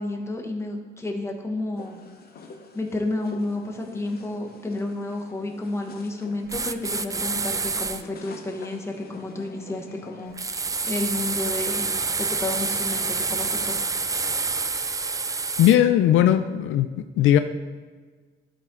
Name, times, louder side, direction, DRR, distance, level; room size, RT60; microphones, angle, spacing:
voice 1, 0.0-2.0 2.7-11.9 12.2-13.8, left 2 dB, 15° left, 1 dB, 1.2 m, -31 dB
sound 1, 1.7-10.4, left 4 dB, 50° left, 1.0 m, -46 dB
sound 2, 6.5-8.0 10.4-15.8, right 4 dB, 15° right, 0.3 m, -27 dB
voice 2, 15.6-16.9 17.2-17.4, left 11 dB, 80° left, 9 dB, 0.5 m, -18 dB
12.5 x 4.3 x 3.7 m, 1.4 s
cardioid pair, 90°, 20 cm